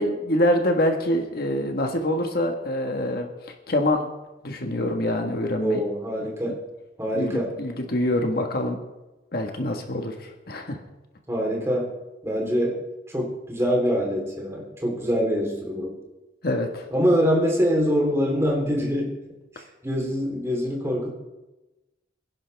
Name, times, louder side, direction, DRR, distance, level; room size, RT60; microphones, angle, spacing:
voice 1, 0.0-3.3 3.7-4.1 4.4-5.8 7.1-8.8 9.3-10.8 16.4-16.9, left 1 dB, 55° left, 3 dB, 1.5 m, -25 dB
voice 2, 5.6-6.6 7.0-7.5 11.3-11.9 12.2-12.8 13.1-16.0 16.9-19.1 19.6-21.1, equal, 15° right, -1 dB, 3.4 m, -24 dB
24.5 x 10.5 x 3.5 m, 1.0 s
head